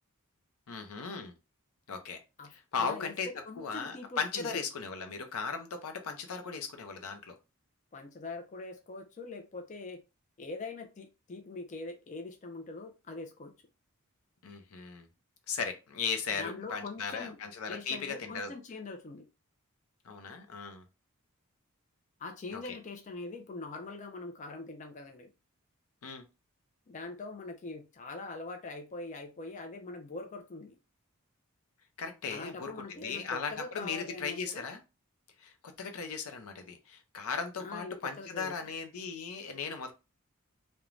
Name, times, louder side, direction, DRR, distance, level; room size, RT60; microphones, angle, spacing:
voice 1, 0.7-1.3 1.9-2.2 2.5-7.4 14.4-15.1 15.5-18.5 20.0-20.8 22.5-22.8 26.0-26.3 32.0-34.8 35.4-39.9, left 5 dB, 85° left, 0.6 m, -37 dB
voice 2, 2.4-3.1 3.4-4.6 7.9-10.0 10.4-13.5 16.4-17.4 17.7-19.2 22.2-25.3 26.9-30.8 32.3-34.6 37.6-38.7, left 3 dB, 35° left, 0.4 m, -43 dB
3.1 x 2.1 x 2.4 m
head